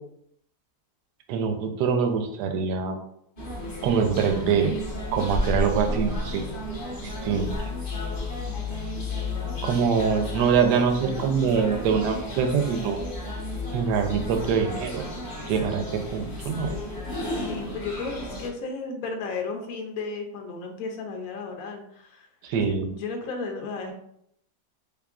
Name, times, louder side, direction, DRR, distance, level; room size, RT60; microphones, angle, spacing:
voice 1, 1.3-3.0 3.8-4.7 5.1-6.4 7.0-7.5 9.6-13.0 13.7-15.0 15.5-16.7 22.4-22.9, right 6 dB, 75° right, 6 dB, 1.1 m, -24 dB
sound 1, 3.4-18.5, left 2 dB, 40° left, 0.7 m, -32 dB
voice 2, 17.5-22.3 22.7-23.9, left 4 dB, 70° left, 3 dB, 0.9 m, -34 dB
3.6 x 3.5 x 2.4 m, 0.73 s
omnidirectional pair, 1.8 m